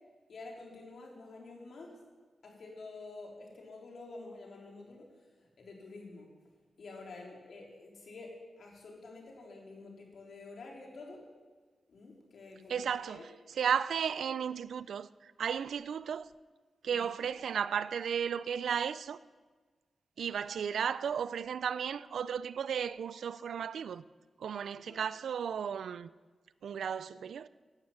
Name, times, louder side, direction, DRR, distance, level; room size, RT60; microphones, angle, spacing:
voice 1, 0.3-2.0 2.4-5.3 5.6-6.3 6.8-11.2 11.9-13.3 16.8-17.2 24.7-25.0, left 3 dB, 60° left, 3.6 m, -49 dB
voice 2, 12.7-13.2 13.6-16.3 16.8-19.2 20.2-24.0 24.4-26.1 26.6-27.5, right 7 dB, 90° right, 0.4 m, -34 dB
16.0 x 11.5 x 7.3 m
wide cardioid pair, 160°, 0 cm